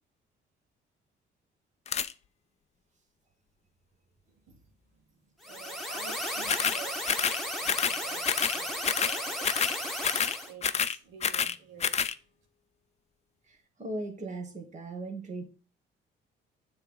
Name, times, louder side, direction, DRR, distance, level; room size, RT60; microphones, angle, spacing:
sound 1, 1.9-2.1 6.5-6.8 7.1-7.4 7.7-8.0 8.2-8.6 8.8-9.2 9.4-9.8 10.0-10.4 10.6-11.6 11.8-12.1, left 7 dB, 35° left, 0.4 m, -28 dB
sound 2, 5.4-10.5, equal, ahead, 1.5 m, -34 dB
voice 1, 5.4-10.0 10.5-12.1, right 7 dB, 80° right, 2 dB, 1.7 m, -50 dB
voice 2, 13.5-15.4, right 2 dB, 35° right, 3 dB, 1.6 m, -38 dB
7.2 x 3.4 x 5.2 m, 0.36 s
cardioid pair, 90°, 20 cm